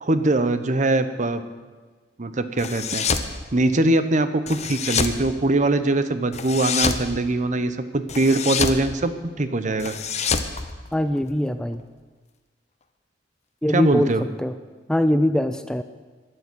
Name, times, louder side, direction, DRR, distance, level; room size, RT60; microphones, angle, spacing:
voice 1, 0.0-1.4 2.2-3.0 3.5-9.1 9.4-9.9 13.7-14.2, right 2 dB, 45° right, 11 dB, 0.8 m, -22 dB
sound 1, 2.6-3.3 4.5-5.2 6.3-7.1 8.1-8.8 9.8-11.3, left 6 dB, 40° left, 0.9 m, -26 dB
voice 2, 10.9-11.8 13.6-14.1 14.4-14.6 14.9-15.8, left 1 dB, 5° left, 10 dB, 0.4 m, -22 dB
15.5 x 11.0 x 6.2 m, 1.4 s
head